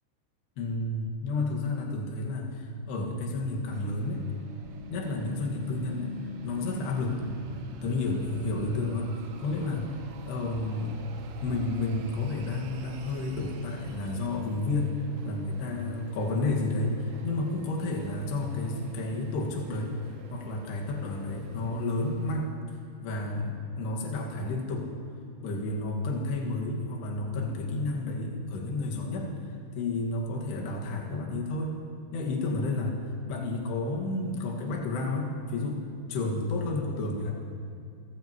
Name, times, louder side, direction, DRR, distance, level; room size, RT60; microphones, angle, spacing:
voice 1, 0.6-4.2 4.9-6.1 6.4-7.2 7.8-9.9 10.3-11.0 11.4-14.9 15.2-20.0 20.3-22.5 23.0-24.9 25.4-29.3 29.7-31.8 32.1-35.8 36.1-37.4, left 2 dB, 60° left, -1 dB, 3.5 m, -31 dB
sound 1, 3.7-22.3, right 5 dB, 90° right, 3.8 m, -52 dB
sound 2, 4.1-13.7, left 1 dB, 35° left, 1.5 m, -44 dB
29.0 x 14.5 x 3.0 m, 2.4 s
omnidirectional pair, 5.9 m